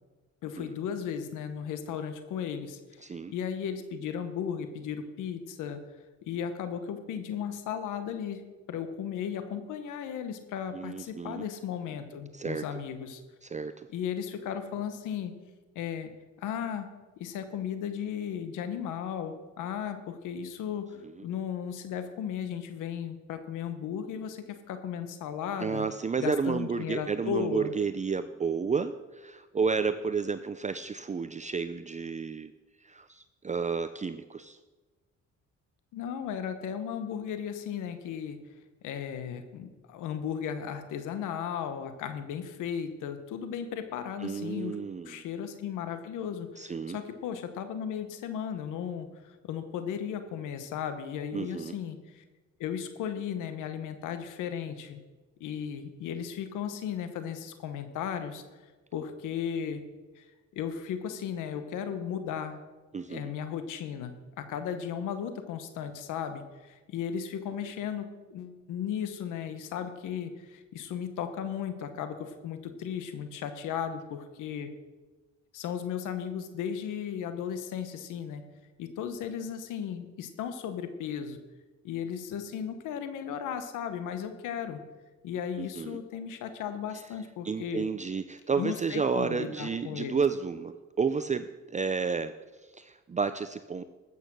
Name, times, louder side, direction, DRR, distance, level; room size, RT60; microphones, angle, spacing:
voice 1, 0.4-2.8 3.0-5.8 6.3-8.4 8.7-13.2 13.9-15.3 15.7-16.1 16.4-16.9 17.2-25.9 26.2-27.7 35.9-38.4 38.8-44.8 45.0-52.2 52.6-55.0 55.4-58.4 58.9-59.8 60.1-60.3 60.5-62.6 63.1-74.7 75.5-78.4 78.8-81.4 81.8-84.8 85.2-87.9 88.6-90.2, left 8 dB, 90° left, 9 dB, 1.2 m, -35 dB
voice 2, 3.0-3.3 10.7-11.4 12.3-12.7 13.4-13.9 21.0-21.2 25.6-32.5 32.8-34.6 44.2-45.2 46.6-47.0 51.3-51.7 62.9-63.3 85.6-86.0 87.4-92.4 92.7-93.8, right 5 dB, 25° right, 11 dB, 0.5 m, -31 dB
13.5 x 8.6 x 6.2 m, 1.2 s
cardioid pair, 90°, 30 cm